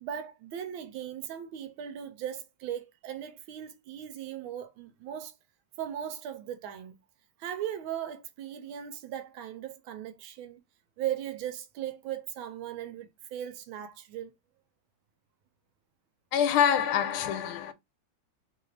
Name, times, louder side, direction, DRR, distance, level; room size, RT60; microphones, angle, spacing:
voice 1, 0.0-5.3 5.8-7.0 7.4-10.6 11.0-14.3, right 10 dB, 75° right, 1.3 m, -38 dB
voice 2, 16.3-17.7, left 9 dB, 80° left, 1.4 m, -25 dB
3.4 x 2.4 x 3.1 m
omnidirectional pair, 2.3 m